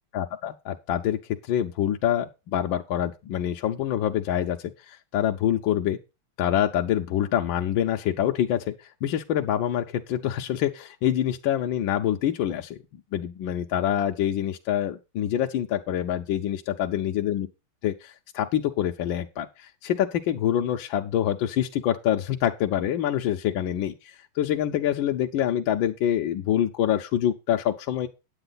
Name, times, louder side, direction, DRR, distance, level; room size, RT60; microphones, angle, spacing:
voice 1, 0.1-1.2 1.5-4.6 4.9-6.0 6.4-8.7 9.0-12.8 13.1-17.5 17.8-28.1, left 10 dB, 70° left, 4 dB, 1.4 m, -26 dB
8.9 x 8.6 x 3.9 m, 0.28 s
omnidirectional pair, 2.4 m